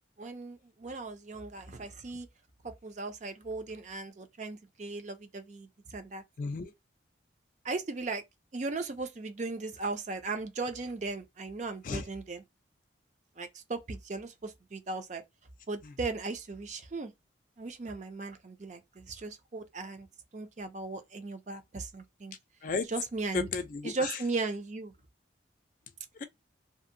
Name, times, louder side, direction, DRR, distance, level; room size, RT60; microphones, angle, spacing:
voice 1, 0.2-2.3 2.6-6.2 7.6-8.2 8.5-12.4 13.4-15.2 15.7-17.1 17.6-20.1 20.3-22.4 22.9-23.5 23.8-24.9, right 3 dB, 40° right, 0.4 m, -37 dB
voice 2, 6.4-6.7 11.8-12.0 15.8-15.9 22.6-22.9 23.3-24.2 26.1-26.2, left 4 dB, 45° left, 0.4 m, -33 dB
2.7 x 2.5 x 2.5 m
head